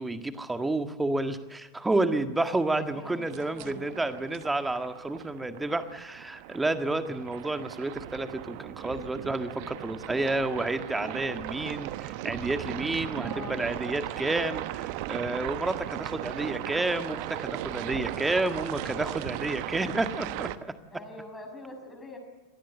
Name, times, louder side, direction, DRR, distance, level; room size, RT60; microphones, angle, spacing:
voice 1, 0.0-20.7, right 2 dB, 10° right, 9 dB, 1.8 m, -30 dB
voice 2, 2.7-3.2 3.5-3.9 13.2-13.6 20.9-22.2, left 2 dB, 10° left, 2 dB, 6.7 m, -43 dB
sound 1, 3.2-20.6, right 15 dB, 45° right, 1.0 m, -37 dB
26.0 x 19.0 x 7.9 m, 1.2 s
figure-of-eight pair, 90°, 0 cm